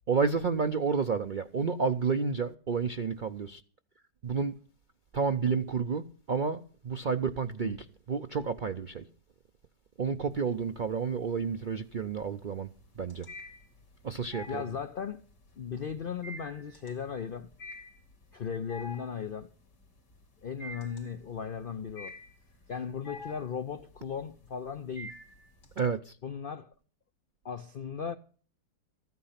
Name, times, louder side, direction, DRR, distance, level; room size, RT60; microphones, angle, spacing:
voice 1, 0.1-3.6 4.2-4.6 5.1-9.0 10.0-12.7 13.0-13.3 14.0-14.6 25.8-26.2, right 5 dB, 85° right, 0.4 m, -30 dB
sound 1, 10.3-10.9 11.3-25.8, left 1 dB, 75° left, 3.3 m, -47 dB
voice 2, 14.5-15.2 15.6-17.5 18.3-19.5 20.4-22.2 22.7-25.2 26.2-26.7 27.4-28.2, left 7 dB, 60° left, 0.5 m, -37 dB
14.5 x 9.5 x 5.8 m
omnidirectional pair, 1.8 m